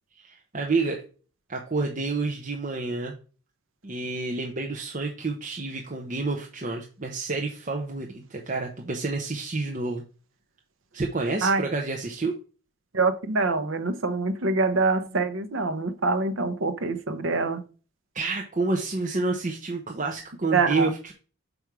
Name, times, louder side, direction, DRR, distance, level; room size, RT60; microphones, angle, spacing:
voice 1, 0.2-1.0 1.5-3.1 3.8-10.0 10.9-12.3 18.1-21.1, right 3 dB, 35° right, 0.8 m, -29 dB
voice 2, 12.9-17.6 20.5-20.9, right 3 dB, 70° right, 0.8 m, -25 dB
5.9 x 5.2 x 4.7 m
head